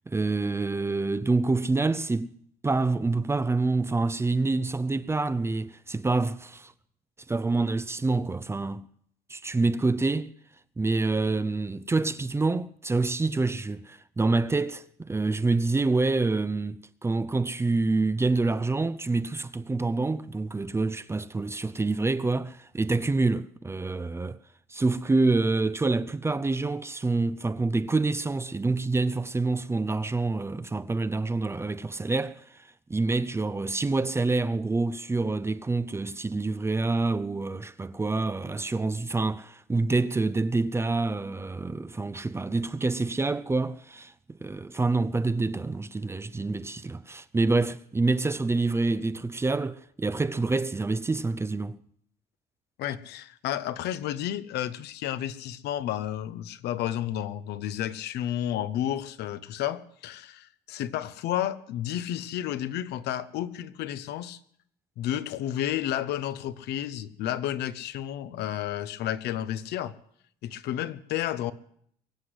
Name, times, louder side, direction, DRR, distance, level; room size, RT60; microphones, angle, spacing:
voice 1, 0.1-2.4 2.6-6.7 7.3-8.9 9.3-10.3 10.8-24.4 24.7-32.4 32.9-51.8, right 3 dB, 15° right, 0.5 m, -27 dB
voice 2, 52.8-64.4 65.0-69.9 70.4-71.5, left 11 dB, 80° left, 0.9 m, -31 dB
22.5 x 8.1 x 7.9 m
cardioid pair, 110°, 17 cm